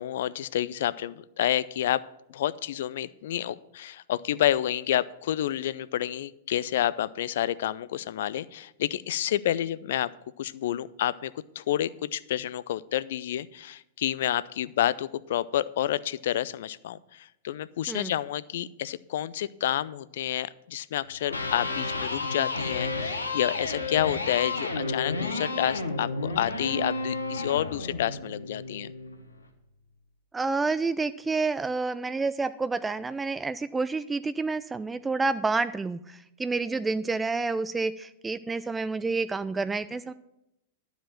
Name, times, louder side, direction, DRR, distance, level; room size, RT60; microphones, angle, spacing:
voice 1, 0.0-2.0 2.3-10.1 10.4-28.9, left 12 dB, 60° left, 19 dB, 0.4 m, -29 dB
Electric guitar, 21.1-29.2, left 3 dB, 85° left, 1.2 m, -32 dB
voice 2, 30.3-40.1, right 3 dB, 10° right, 14 dB, 0.3 m, -29 dB
11.5 x 5.1 x 7.5 m, 0.87 s
figure-of-eight pair, 100°, 0 cm